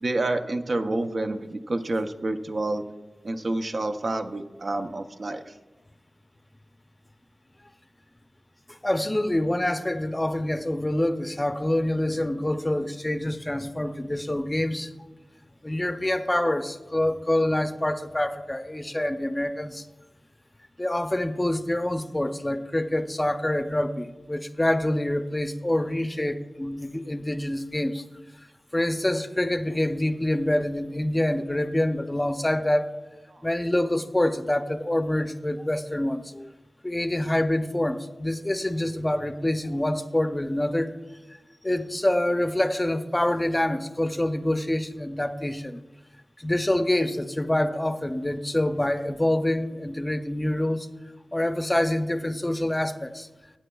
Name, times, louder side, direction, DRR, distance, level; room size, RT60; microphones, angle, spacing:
voice 1, 0.0-2.8 3.2-5.5 33.3-33.4, right 2 dB, 60° right, 7 dB, 0.6 m, -28 dB
voice 2, 8.8-14.9 15.6-19.9 20.8-28.0 28.7-33.0 33.4-36.5 36.8-40.9 41.6-45.8 46.4-50.9 51.3-53.3, left 1 dB, 20° left, 9 dB, 0.5 m, -26 dB
16.5 x 8.4 x 2.3 m, 1.1 s
wide cardioid pair, 65°, 0 cm